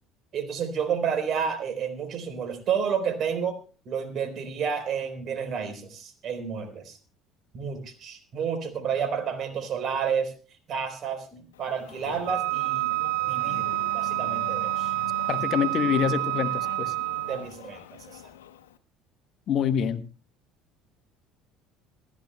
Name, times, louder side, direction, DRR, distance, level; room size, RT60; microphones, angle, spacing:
voice 1, 0.3-3.6 3.9-7.0 7.5-10.3 10.7-12.9 13.3-13.7 13.9-14.9 17.0-17.8 18.1-18.2, right 7 dB, 50° right, 8 dB, 3.9 m, -30 dB
Race car auto racing / Accelerating revving vroom, 11.5-18.8, left 11 dB, 80° left, 1.0 m, -41 dB
Wind instrument woodwind instrument, 12.3-17.5, right 29 dB, 70° right, 0.5 m, -28 dB
voice 2, 15.3-16.9 19.5-20.1, left 8 dB, 50° left, 13 dB, 1.0 m, -26 dB
27.5 x 12.5 x 2.2 m, 0.37 s
hypercardioid pair, 60°, 0 cm